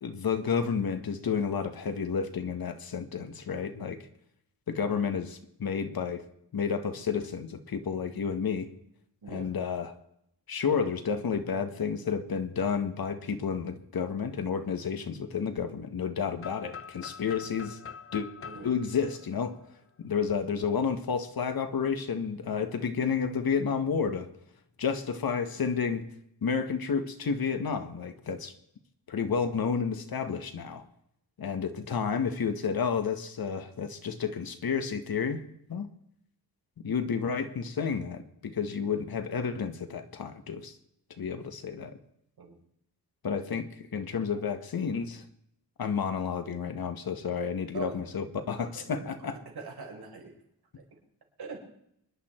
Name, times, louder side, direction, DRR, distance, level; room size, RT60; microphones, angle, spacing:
voice 1, 0.0-4.0 4.7-6.2 6.5-8.7 9.3-9.9 10.5-17.8 18.1-18.3 18.6-19.6 20.0-24.3 24.8-26.0 26.4-28.5 29.1-30.8 31.4-35.4 35.7-35.9 36.8-40.7 41.2-42.0 43.2-43.7 43.9-45.2 45.8-49.4, left 6 dB, 60° left, 8 dB, 1.6 m, -31 dB
voice 2, 9.2-9.5 18.4-18.7 19.1-19.2 42.4-42.5 47.7-48.0 48.6-50.3 50.8-50.9 51.4-51.6, right 4 dB, 70° right, 0 dB, 4.8 m, -43 dB
sound 1, 16.4-20.2, left 6 dB, 35° left, 0.7 m, -45 dB
24.5 x 11.0 x 4.5 m, 0.74 s
wide cardioid pair, 150°, 40 cm